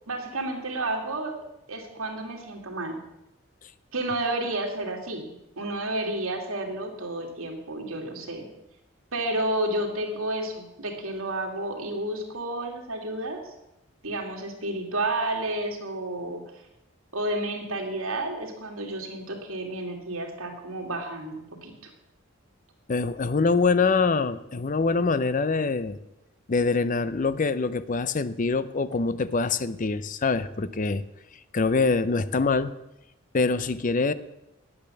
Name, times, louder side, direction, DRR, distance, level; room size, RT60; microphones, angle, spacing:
voice 1, 0.1-1.3 1.7-3.0 3.9-5.3 5.6-8.5 9.1-13.5 14.0-16.4 17.1-21.7, right 1 dB, 85° right, 1 dB, 2.5 m, -31 dB
voice 2, 22.9-26.0 26.5-31.0 31.5-32.7 33.3-34.1, left 4 dB, 40° left, 15 dB, 0.5 m, -24 dB
10.5 x 8.7 x 6.8 m, 0.88 s
head